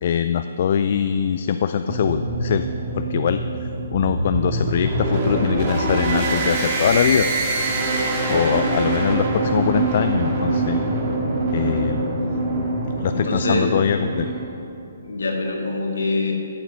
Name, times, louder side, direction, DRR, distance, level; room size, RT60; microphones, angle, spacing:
voice 1, 0.0-2.7 2.9-7.3 8.3-10.8 11.5-12.2 13.0-14.4, left 8 dB, 45° left, 9 dB, 0.3 m, -22 dB
sound 1, 1.9-14.4, right 2 dB, 35° right, 1.8 m, -24 dB
voice 2, 13.1-13.8 15.0-16.3, left 2 dB, 65° left, 1 dB, 1.7 m, -25 dB
12.0 x 7.2 x 5.5 m, 2.7 s
figure-of-eight pair, 130°, 0 cm